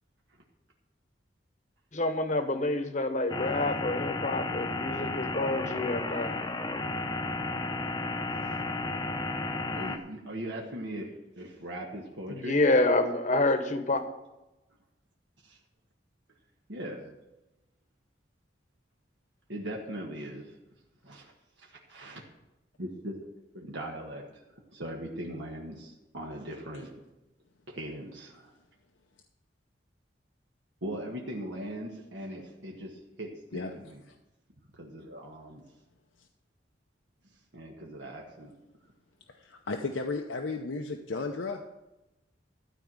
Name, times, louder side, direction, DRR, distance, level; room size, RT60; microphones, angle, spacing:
voice 1, 1.9-6.4 12.3-14.0, left 2 dB, 40° left, 8 dB, 1.0 m, -28 dB
sound 1, 3.3-10.0, left 2 dB, 20° left, 0.7 m, -33 dB
voice 2, 9.7-11.1 11.4-12.6 15.4-15.6 16.7-17.1 19.5-20.5 21.0-21.3 21.6-22.2 22.8-23.1 23.5-26.9 27.7-28.5 30.8-34.0 34.8-35.6 37.5-38.5, right 1 dB, 75° right, -1 dB, 1.6 m, -40 dB
voice 3, 39.3-41.6, left 3 dB, 85° left, 4 dB, 0.7 m, -34 dB
13.0 x 4.6 x 8.7 m, 0.99 s
head